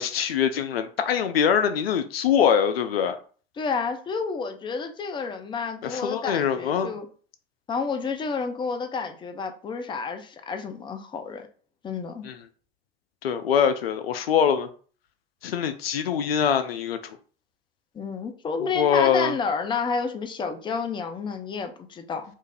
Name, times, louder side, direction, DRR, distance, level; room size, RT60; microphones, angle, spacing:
voice 1, 0.0-3.2 5.8-6.9 12.2-12.4 13.2-14.7 15.4-17.2 18.6-19.3, left 8 dB, 85° left, 0.5 m, -23 dB
voice 2, 3.6-7.1 7.7-11.5 11.8-12.3 17.9-22.2, left 5 dB, 15° left, 0.5 m, -30 dB
3.2 x 2.4 x 3.4 m
hypercardioid pair, 85°, 29 cm